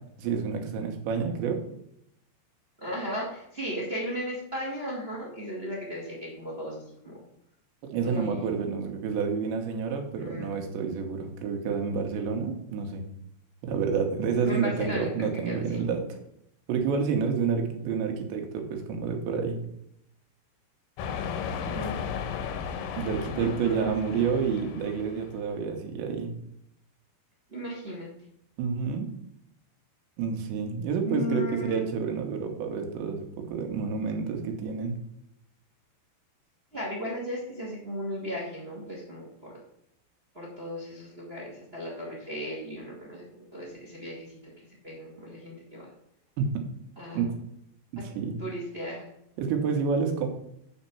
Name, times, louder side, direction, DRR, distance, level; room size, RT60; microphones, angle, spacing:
voice 1, 0.2-1.6 7.9-13.1 13.6-16.0 16.7-19.6 22.9-26.3 28.6-29.1 30.2-35.0 46.4-46.5 47.1-47.3 47.9-48.4 49.4-50.3, right 6 dB, 75° right, 3 dB, 3.5 m, -29 dB
voice 2, 2.8-7.1 8.0-8.5 10.1-10.6 14.4-15.8 21.6-22.0 23.3-23.9 27.5-28.1 31.0-31.8 36.7-39.5 40.3-44.5 44.8-45.9 47.0-47.2 47.9-48.0 48.4-49.1, equal, 40° right, -3 dB, 0.8 m, -36 dB
sound 1, 21.0-25.5, left 7 dB, 90° left, 3.2 m, -35 dB
8.6 x 4.3 x 7.0 m, 0.75 s
omnidirectional pair, 5.3 m